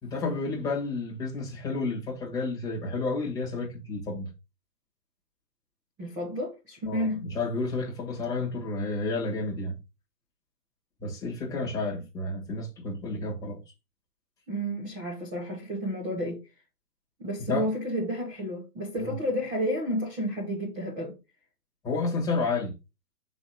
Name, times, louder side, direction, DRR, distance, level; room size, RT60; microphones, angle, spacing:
voice 1, 0.0-4.3 6.8-9.8 11.0-13.6 17.5-17.6 19.0-19.2 21.8-22.7, left 3 dB, 5° left, 1.5 m, -31 dB
voice 2, 6.0-7.2 14.5-16.4 17.2-21.2, equal, 10° right, 0.9 m, -31 dB
6.0 x 3.6 x 5.0 m
hypercardioid pair, 155°, 48 cm